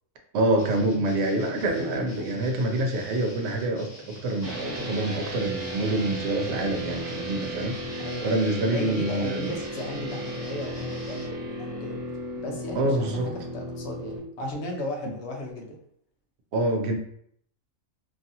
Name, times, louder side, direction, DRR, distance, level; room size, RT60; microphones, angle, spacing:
voice 1, 0.3-9.5 12.7-13.3 16.5-17.0, right 1 dB, 65° right, 2 dB, 0.8 m, -26 dB
sound 1, 0.6-11.3, left 1 dB, 30° left, 0.6 m, -46 dB
sound 2, 4.4-14.2, right 1 dB, 35° right, 0.9 m, -35 dB
voice 2, 8.0-8.4 8.7-12.0 12.4-15.8, left 1 dB, 60° left, 1 dB, 0.9 m, -35 dB
3.0 x 2.6 x 2.6 m, 0.67 s
omnidirectional pair, 1.3 m